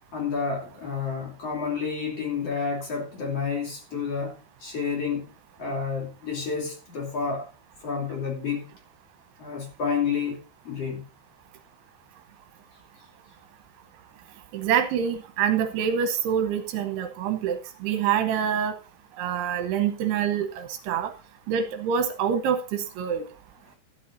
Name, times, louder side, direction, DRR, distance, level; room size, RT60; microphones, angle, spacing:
voice 1, 0.1-4.4 4.6-5.3 5.6-7.5 7.8-8.7 9.4-10.4 10.6-11.0, left 5 dB, 40° left, 3.7 m, -30 dB
voice 2, 14.5-18.7 19.2-21.1 21.5-23.2, right 8 dB, 75° right, 2.8 m, -26 dB
13.5 x 11.5 x 2.6 m
omnidirectional pair, 5.0 m